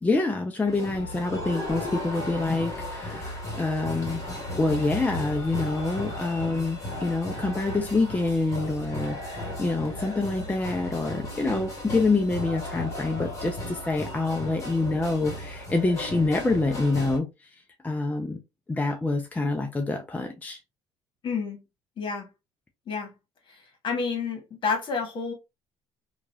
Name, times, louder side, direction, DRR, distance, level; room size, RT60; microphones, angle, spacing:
voice 1, 0.0-4.2 4.6-17.3 17.8-18.4 18.7-20.6, left 3 dB, 15° left, 0.6 m, -26 dB
sound 1, 0.7-17.2, left 1 dB, 30° left, 1.8 m, -35 dB
voice 2, 21.2-21.6 22.0-22.3 22.9-23.1 23.8-25.3, left 5 dB, 50° left, 1.5 m, -29 dB
2.9 x 2.4 x 2.7 m
supercardioid pair, 80°, 11 cm